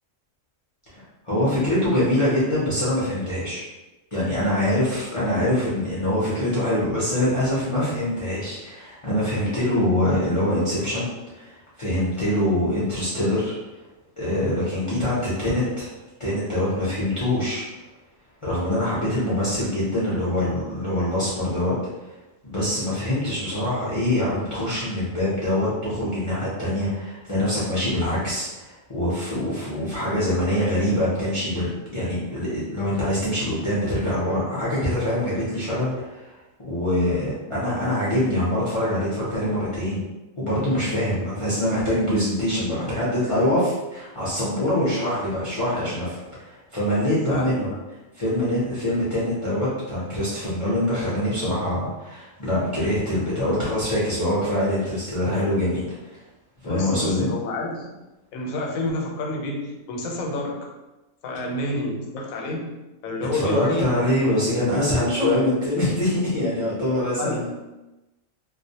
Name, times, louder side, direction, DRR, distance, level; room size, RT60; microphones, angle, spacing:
voice 1, 0.9-3.7 4.1-11.1 11.3-13.5 14.2-15.9 16.2-17.6 18.4-21.7 22.4-36.4 36.6-40.0 40.4-47.7 48.1-56.2 56.6-57.3 63.3-67.5, left 1 dB, 45° left, -9 dB, 0.4 m, -24 dB
voice 2, 47.3-47.8 56.6-57.9 58.3-60.7 61.2-62.8 63.0-64.3 67.2-67.5, left 1 dB, 85° left, 0 dB, 1.0 m, -29 dB
2.3 x 2.1 x 2.7 m, 1.0 s
omnidirectional pair, 1.4 m